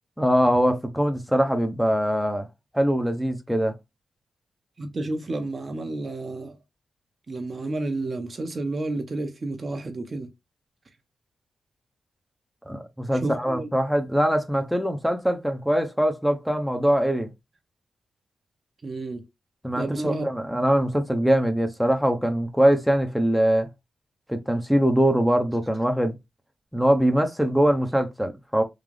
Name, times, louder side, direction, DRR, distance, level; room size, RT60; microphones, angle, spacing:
voice 1, 0.2-2.5 2.7-3.7 12.7-17.3 19.6-23.7 24.3-26.1 26.7-28.6, equal, ahead, 0.8 m, -22 dB
voice 2, 4.8-6.6 7.3-10.3 13.1-13.7 18.8-19.2 19.8-20.3, right 2 dB, 45° right, 0.9 m, -30 dB
3.8 x 2.4 x 3.3 m
cardioid pair, 55°, 0 cm